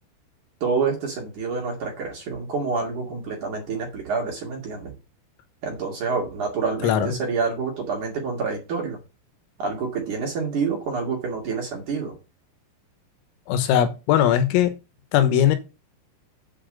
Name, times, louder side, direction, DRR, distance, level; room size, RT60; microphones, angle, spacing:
voice 1, 0.6-4.9 5.6-9.0 9.6-12.1, right 5 dB, 50° right, 2.9 m, -27 dB
voice 2, 13.5-14.7 15.1-15.6, left 10 dB, 85° left, 3.8 m, -19 dB
8.4 x 5.1 x 6.4 m
omnidirectional pair, 6.0 m